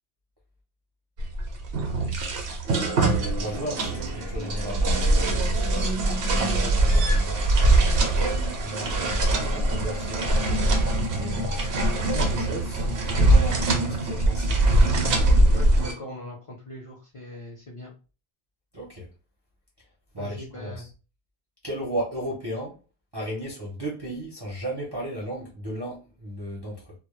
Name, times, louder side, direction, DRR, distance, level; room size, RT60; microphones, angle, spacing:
sound 1, 1.2-15.9, right 2 dB, 70° right, 0.8 m, -22 dB
voice 1, 3.4-5.9 6.3-7.4 7.8-10.3 11.1-14.5 18.7-19.1 20.1-20.9 21.6-22.8 23.1-26.9, right 1 dB, 30° right, 0.5 m, -35 dB
voice 2, 15.5-17.9 20.2-20.8, left 1 dB, 40° left, 0.5 m, -40 dB
2.1 x 2.0 x 3.0 m
omnidirectional pair, 1.1 m